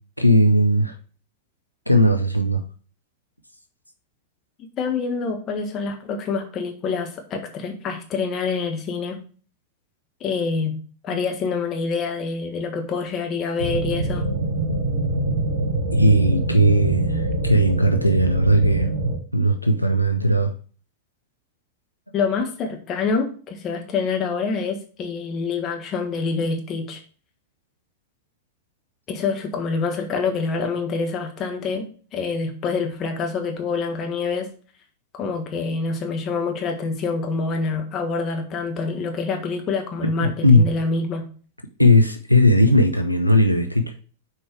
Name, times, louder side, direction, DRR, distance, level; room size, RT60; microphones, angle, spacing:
voice 1, 0.2-0.9 1.9-2.6 11.1-11.2 15.9-18.9 19.3-20.5 40.0-40.7 41.8-43.9, equal, 90° left, 6 dB, 0.6 m, -18 dB
voice 2, 4.8-9.2 10.2-10.8 11.0-14.3 22.1-27.0 29.1-31.8 32.1-34.5 35.1-41.2, left 4 dB, 30° left, 3 dB, 1.5 m, -26 dB
sound 1, 13.6-19.2, right 2 dB, 65° right, 1.8 m, -24 dB
6.5 x 4.6 x 4.6 m, 0.40 s
figure-of-eight pair, 90°, 0 cm